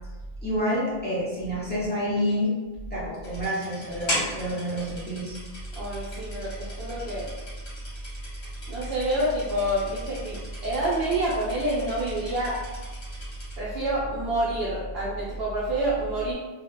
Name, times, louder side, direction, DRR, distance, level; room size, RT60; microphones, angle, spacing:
voice 1, 0.4-2.5 2.9-5.4, equal, 15° left, -8 dB, 0.5 m, -28 dB
sound 1, 3.2-13.5, equal, 60° left, 1.1 m, -38 dB
voice 2, 5.7-7.3 8.7-12.6 13.6-16.3, right 1 dB, 75° right, -7 dB, 0.8 m, -27 dB
2.3 x 2.0 x 3.0 m, 1.2 s
omnidirectional pair, 1.1 m